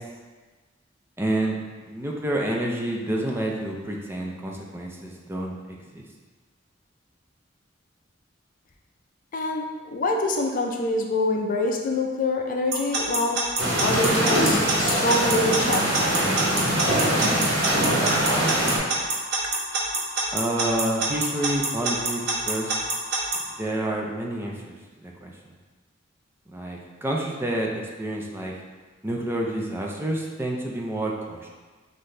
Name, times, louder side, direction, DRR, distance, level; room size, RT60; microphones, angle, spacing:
voice 1, 1.2-1.6 1.9-5.5 5.9-6.0 20.3-22.7 23.6-24.8 25.2-25.3 26.5-27.7 28.0-28.5 29.0-31.5, right 1 dB, 10° right, -1 dB, 0.4 m, -28 dB
voice 2, 9.3-16.1, left 2 dB, 45° left, 2 dB, 0.5 m, -26 dB
Alarm / Clock, 12.7-23.4, right 3 dB, 60° right, 1.1 m, -25 dB
sound 1, 13.6-18.8, right 1 dB, 85° right, 1.3 m, -23 dB
5.9 x 2.6 x 3.2 m, 1.3 s
head